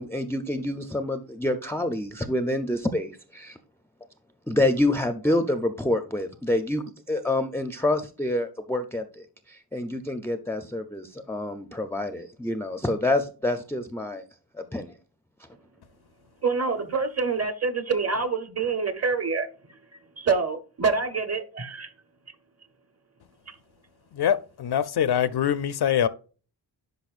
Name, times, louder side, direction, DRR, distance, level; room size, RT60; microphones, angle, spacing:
voice 1, 0.0-3.6 4.5-14.2 14.5-15.0, left 1 dB, 5° left, 0.4 m, -27 dB
voice 2, 16.4-19.8 20.2-21.9 23.5-23.6, right 4 dB, 35° right, 0.8 m, -26 dB
voice 3, 24.1-26.1, left 9 dB, 60° left, 0.5 m, -24 dB
10.5 x 5.2 x 2.4 m
wide cardioid pair, 160°, 44 cm